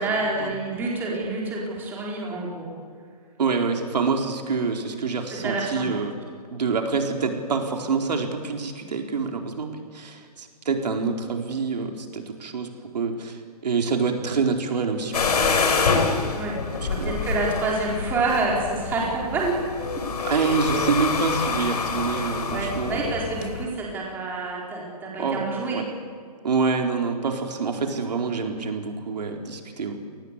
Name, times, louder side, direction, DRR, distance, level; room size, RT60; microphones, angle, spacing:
voice 1, 0.0-2.6 5.4-5.9 16.3-16.6 16.9-19.6 22.5-25.8, right 3 dB, 10° right, -3 dB, 4.2 m, -27 dB
voice 2, 3.4-6.1 6.5-12.7 12.9-15.6 16.8-17.2 20.2-23.3 25.2-25.4 25.7-25.8 26.4-30.0, right 4 dB, 85° right, 3 dB, 4.4 m, -26 dB
sound 1, 15.1-23.6, left 5 dB, 70° left, 4.6 m, -26 dB
29.5 x 19.5 x 8.3 m, 2.1 s
hypercardioid pair, 175°, 21 cm